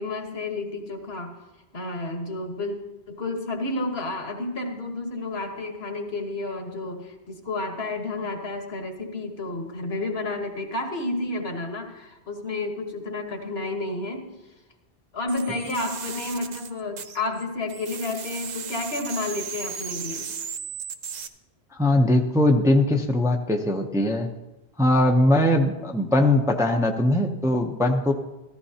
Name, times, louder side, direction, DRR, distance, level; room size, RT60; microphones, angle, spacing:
voice 1, 0.0-1.3 1.7-2.8 3.1-14.3 15.1-20.3, left 2 dB, 70° left, 4 dB, 1.6 m, -31 dB
sound 1, 15.3-17.4 17.7-21.3, right 6 dB, 50° right, 0.6 m, -36 dB
voice 2, 21.8-24.3 24.8-28.1, left 1 dB, 5° right, 3 dB, 0.6 m, -20 dB
14.5 x 14.0 x 2.8 m, 1.0 s
omnidirectional pair, 1.1 m